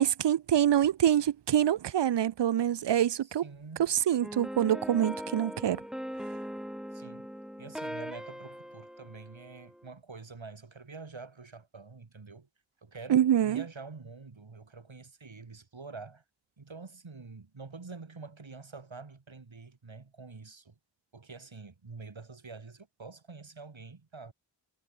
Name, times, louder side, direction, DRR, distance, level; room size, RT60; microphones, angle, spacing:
voice 1, 0.0-3.4 3.8-5.8 13.1-13.6, right 10 dB, 65° right, 0.5 m, -25 dB
voice 2, 3.2-3.9 6.9-7.3 7.6-12.5 12.8-16.2 16.6-20.8 21.1-24.3, right 4 dB, 90° right, 5.4 m, -47 dB
sound 1, 4.2-9.9, equal, ahead, 3.4 m, -40 dB
wide cardioid pair, 50°, 45 cm